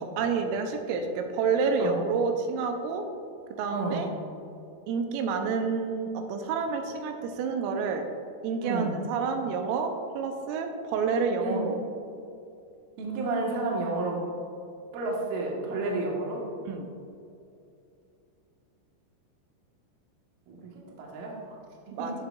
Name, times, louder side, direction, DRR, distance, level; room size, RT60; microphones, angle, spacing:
voice 1, 0.0-3.1 3.6-4.1 4.9-8.1 8.4-11.8 16.7-16.9 21.9-22.1, right 5 dB, 85° right, 5 dB, 3.2 m, -29 dB
voice 2, 3.7-4.0 8.6-8.9 11.4-11.6 13.0-14.2 14.9-16.4 20.5-21.6 21.9-22.1, right 3 dB, 70° right, -2 dB, 2.3 m, -31 dB
10.5 x 6.7 x 2.3 m, 2.6 s
omnidirectional pair, 5.8 m